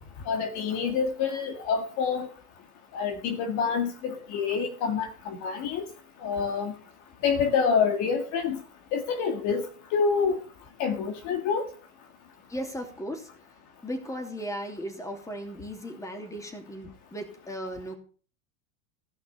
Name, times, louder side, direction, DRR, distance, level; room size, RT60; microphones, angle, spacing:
voice 1, 0.3-2.3 2.9-5.9 6.2-6.7 7.2-8.6 8.9-10.4 10.8-11.7, left 6 dB, 45° left, 6 dB, 1.9 m, -27 dB
voice 2, 12.5-13.3 13.8-17.9, equal, 10° left, 4 dB, 2.9 m, -36 dB
16.5 x 5.9 x 7.1 m, 0.42 s
supercardioid pair, 130°, 40 cm